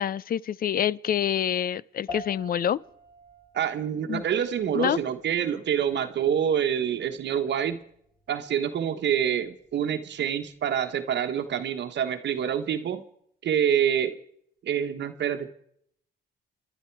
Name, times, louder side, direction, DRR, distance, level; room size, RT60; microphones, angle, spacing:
voice 1, 0.0-2.8 4.1-4.2 4.7-5.0, left 9 dB, 50° left, 0.5 m, -26 dB
sound 1, 2.1-11.7, left 2 dB, 20° left, 4.6 m, -48 dB
voice 2, 3.5-7.8 8.3-13.0 13.4-14.2 14.6-15.5, right 8 dB, 65° right, 1.3 m, -26 dB
28.0 x 10.5 x 4.6 m
cardioid pair, 90°, 20 cm